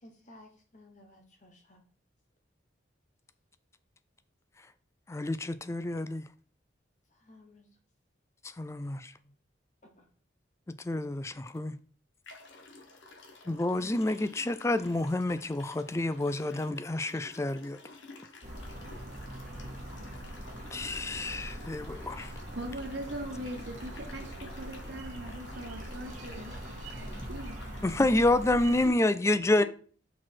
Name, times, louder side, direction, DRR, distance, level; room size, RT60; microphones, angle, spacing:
voice 1, 0.0-1.8 7.1-7.7 9.2-9.3 14.0-14.2, left 1 dB, 40° left, 1.0 m, -56 dB
voice 2, 5.1-6.2 8.4-9.1 10.7-11.8 13.5-17.8 20.7-22.3 27.8-29.6, left 2 dB, 15° left, 0.3 m, -29 dB
sound 1, 11.5-11.6 12.2-28.2, left 3 dB, 80° left, 1.2 m, -52 dB
sound 2, 18.4-28.9, right 1 dB, 40° right, 1.6 m, -42 dB
voice 3, 22.2-28.7, right 1 dB, 65° right, 1.4 m, -42 dB
6.0 x 4.7 x 4.5 m
head